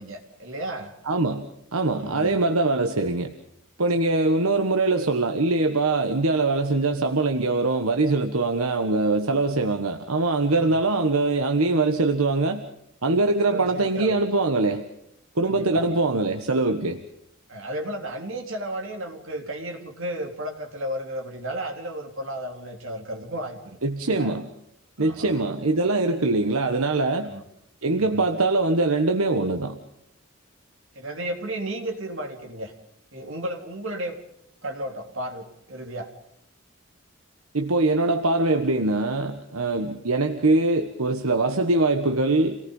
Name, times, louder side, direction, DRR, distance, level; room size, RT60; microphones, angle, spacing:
voice 1, 0.0-0.9 2.0-2.4 10.6-10.8 13.5-14.2 15.5-16.0 17.5-23.8 24.0-24.3 25.0-25.3 27.2-27.4 28.0-28.3 30.9-32.7 33.1-34.2 34.6-36.1 39.6-39.9, right 1 dB, 65° right, 3 dB, 3.5 m, -34 dB
voice 2, 1.1-3.3 3.8-12.6 13.0-14.9 15.3-17.0 23.8-24.5 25.0-27.3 27.8-29.8 37.5-42.6, right 2 dB, 85° right, 5 dB, 1.4 m, -23 dB
28.0 x 19.0 x 5.6 m, 0.76 s
head